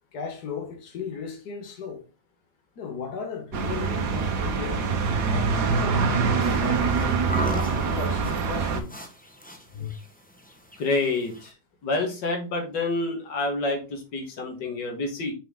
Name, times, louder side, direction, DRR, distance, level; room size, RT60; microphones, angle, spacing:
voice 1, 0.1-2.1 2.8-4.9 5.3-6.9 7.5-8.9 9.7-9.9, left 6 dB, 65° left, 1.8 m, -35 dB
sound 1, 3.5-8.8, right 5 dB, 70° right, 1.6 m, -24 dB
sound 2, 6.4-11.5, right 1 dB, 10° left, 0.6 m, -37 dB
voice 2, 10.8-11.5 11.8-15.3, left 2 dB, 85° left, 2.2 m, -28 dB
6.1 x 4.5 x 3.7 m
omnidirectional pair, 1.9 m